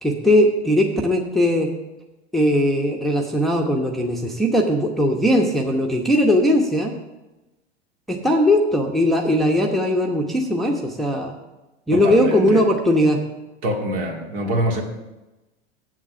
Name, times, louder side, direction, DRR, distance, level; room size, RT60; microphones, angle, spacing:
voice 1, 0.0-1.7 2.3-6.9 8.1-11.3 11.9-13.2, left 1 dB, ahead, 1 dB, 1.0 m, -19 dB
voice 2, 11.9-12.6 13.6-14.8, right 1 dB, 55° right, 1 dB, 2.2 m, -25 dB
8.2 x 7.3 x 6.8 m, 1.0 s
hypercardioid pair, 95°, 34 cm